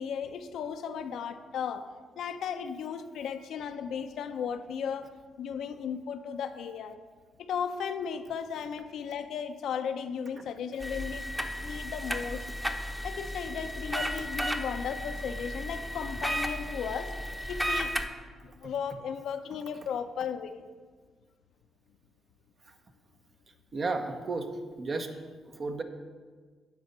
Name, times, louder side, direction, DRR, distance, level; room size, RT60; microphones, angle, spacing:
voice 1, 0.0-1.9 2.2-5.1 5.4-7.0 7.4-11.3 11.6-12.4 13.0-17.1 17.5-17.9 18.4-20.7, left 7 dB, 75° left, 8 dB, 0.5 m, -35 dB
sound 1, 10.8-18.1, equal, 10° right, 0.9 m, -34 dB
voice 2, 23.7-24.5 24.8-25.1 25.5-25.8, right 3 dB, 50° right, 5 dB, 1.0 m, -33 dB
9.6 x 4.1 x 6.7 m, 1.5 s
supercardioid pair, 55°, 0 cm